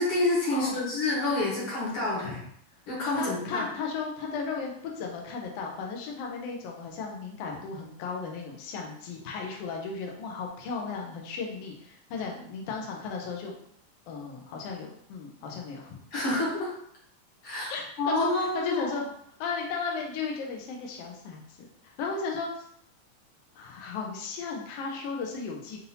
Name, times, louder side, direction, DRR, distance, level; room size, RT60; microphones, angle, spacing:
voice 1, 0.0-2.4 2.9-3.7 16.1-16.7 17.4-17.7 18.0-19.0, left 2 dB, 55° left, -5 dB, 1.8 m, -28 dB
voice 2, 3.1-13.5 14.1-15.9 17.7-19.1 19.4-22.6 23.5-25.8, left 5 dB, 80° left, 0 dB, 1.4 m, -35 dB
5.7 x 2.7 x 2.7 m, 0.69 s
omnidirectional pair, 3.6 m